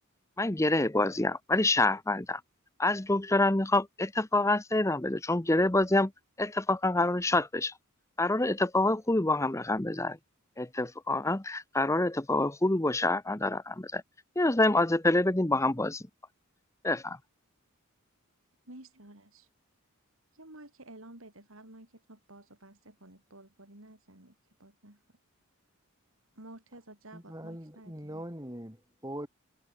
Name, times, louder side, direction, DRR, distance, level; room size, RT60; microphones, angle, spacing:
voice 1, 0.4-2.4 2.8-6.1 6.4-7.7 8.2-10.2 10.6-14.0 14.4-16.0 16.8-17.2, left 2 dB, 15° left, 0.8 m, -27 dB
voice 2, 18.7-19.5 20.4-25.0 26.4-28.2, right 1 dB, 65° right, 4.4 m, -52 dB
voice 3, 27.1-29.3, right 1 dB, 15° right, 6.5 m, -41 dB
head